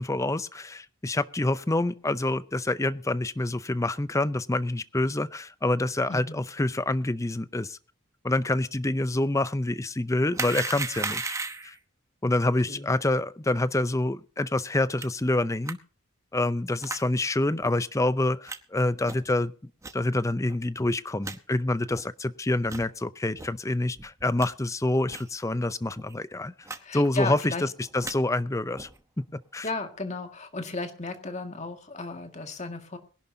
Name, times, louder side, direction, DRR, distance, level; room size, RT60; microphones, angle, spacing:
voice 1, 0.0-7.8 8.2-11.3 11.6-11.7 12.2-15.8 16.3-19.5 19.9-26.5 26.9-27.7 27.9-28.9 29.3-29.7, left 2 dB, 15° left, 15 dB, 0.5 m, -27 dB
voice 2, 6.1-6.4 12.7-12.9 26.7-27.6 29.6-33.0, left 3 dB, 35° left, 5 dB, 1.9 m, -34 dB
sound 1, 10.3-11.8 15.0-15.1 15.7-15.8 16.8-17.0 17.6-17.7 18.5-18.6 19.0-19.3 19.8-19.9 20.5-20.6 20.8-20.9 21.2-21.4 21.9-22.0 22.6-22.9 23.4-23.5 24.0-24.5 25.1-25.3 25.6-25.7 26.0-26.1 26.7-26.8 27.0-27.4 27.8-28.2 28.7-29.0, right 3 dB, 15° right, 0.9 m, -35 dB
22.5 x 11.0 x 2.8 m, 0.36 s
head